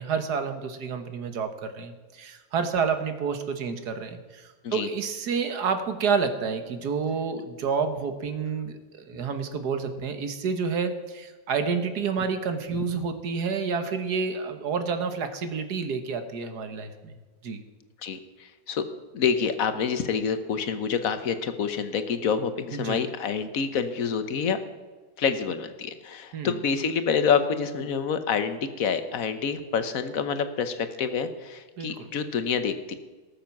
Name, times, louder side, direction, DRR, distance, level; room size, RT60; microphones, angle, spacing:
voice 1, 0.0-4.4 4.7-16.9 17.4-17.6 22.7-23.0 26.3-26.6 31.8-32.1, right 5 dB, 75° right, 8 dB, 1.8 m, -29 dB
voice 2, 18.0-18.8 19.1-24.6 25.2-32.9, left 6 dB, 60° left, 10 dB, 1.4 m, -27 dB
18.5 x 7.4 x 5.9 m, 1.3 s
omnidirectional pair, 1.7 m